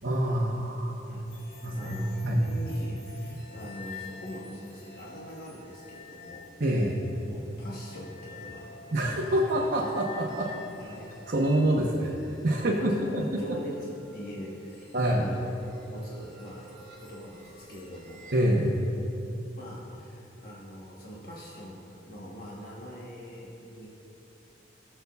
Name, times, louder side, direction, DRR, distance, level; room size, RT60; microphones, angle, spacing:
voice 1, 0.0-1.0 1.6-2.4 6.6-7.0 8.9-10.5 11.3-13.4 14.9-15.3 18.3-18.8, right 1 dB, 55° right, -3 dB, 0.9 m, -26 dB
voice 2, 1.0-6.5 7.3-8.7 9.0-9.3 10.8-11.1 12.5-15.4 15.9-18.3 19.6-23.9, equal, 50° left, -4 dB, 1.1 m, -43 dB
sound 1, 1.3-18.4, left 3 dB, 35° left, 1.6 m, -49 dB
19.5 x 6.9 x 2.4 m, 2.9 s
head